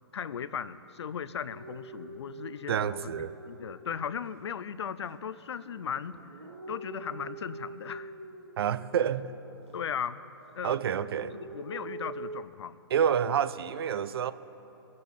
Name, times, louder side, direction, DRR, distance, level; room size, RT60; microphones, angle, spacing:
voice 1, 0.1-8.2 9.7-10.2 10.5-10.8 11.2-12.8, left 7 dB, 85° left, 15 dB, 0.5 m, -37 dB
sound 1, 1.5-4.4 4.9-9.2 9.6-10.6 10.9-12.4, right 3 dB, 85° right, 1.1 m, -45 dB
voice 2, 2.7-3.3 8.6-9.3 10.6-11.4 12.9-14.3, right 8 dB, 65° right, 15 dB, 0.5 m, -28 dB
20.0 x 6.8 x 5.2 m, 2.9 s
hypercardioid pair, 155°, 14 cm